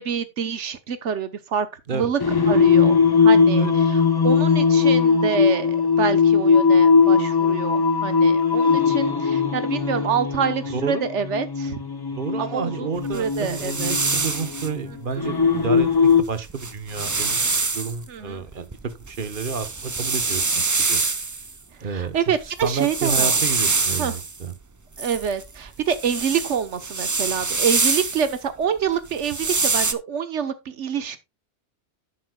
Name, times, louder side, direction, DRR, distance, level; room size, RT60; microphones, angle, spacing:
voice 1, 0.0-1.7 1.9-2.2 2.5-11.8 12.4-13.9 15.1-15.2 18.1-18.4 21.8-23.4 24.0-24.1 25.0-31.2, right 7 dB, 80° right, 1.4 m, -27 dB
Singing, 2.2-16.2, left 5 dB, 25° left, 0.7 m, -19 dB
voice 2, 12.2-17.4 17.7-18.7 19.1-21.0 21.8-22.2 22.6-24.5, right 5 dB, 50° right, 1.2 m, -30 dB
sound 1, 13.1-14.7 16.1-16.2 16.5-17.9 18.5-21.5 22.4-24.4 25.0-28.4 29.1-29.9, right 3 dB, 25° right, 0.4 m, -25 dB
11.0 x 8.5 x 2.3 m
omnidirectional pair, 1.2 m